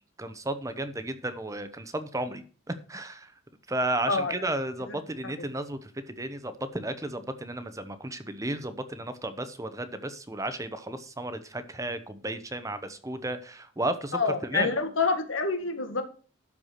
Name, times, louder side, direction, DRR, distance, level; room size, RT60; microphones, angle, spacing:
voice 1, 0.2-3.3 3.7-14.7, right 1 dB, 15° right, 10 dB, 0.9 m, -33 dB
voice 2, 14.1-16.0, left 4 dB, 85° left, 7 dB, 1.9 m, -27 dB
12.5 x 4.8 x 6.5 m, 0.39 s
head